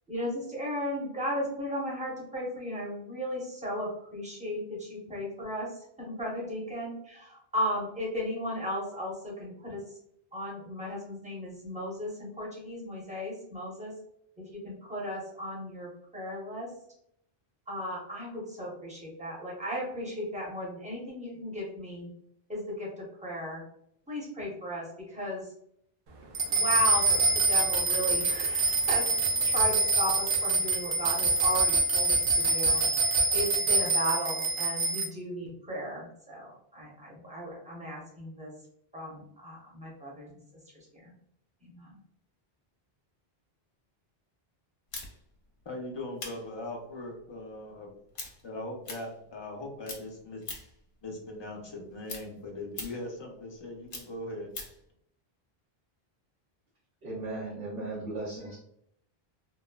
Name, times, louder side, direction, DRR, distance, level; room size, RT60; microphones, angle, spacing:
voice 1, 0.1-10.0 10.3-13.9 14.4-16.7 17.7-22.1 22.5-23.6 24.1-25.5 26.5-29.1 29.4-32.8 33.3-38.5 38.9-40.4 40.9-41.1 41.6-42.0, equal, 10° right, -4 dB, 0.7 m, -35 dB
sound 1, 26.3-35.1, right 3 dB, 60° right, 0.6 m, -25 dB
sound 2, 44.9-49.6 49.8-50.9 51.2-54.9, left 3 dB, 65° left, 0.8 m, -43 dB
voice 2, 45.7-47.9 48.4-50.4 51.0-54.5, left 1 dB, 35° left, 1 dB, 0.5 m, -40 dB
voice 3, 57.0-58.6, right 2 dB, 85° right, -8 dB, 1.0 m, -36 dB
3.1 x 2.0 x 2.2 m, 0.72 s
omnidirectional pair, 1.0 m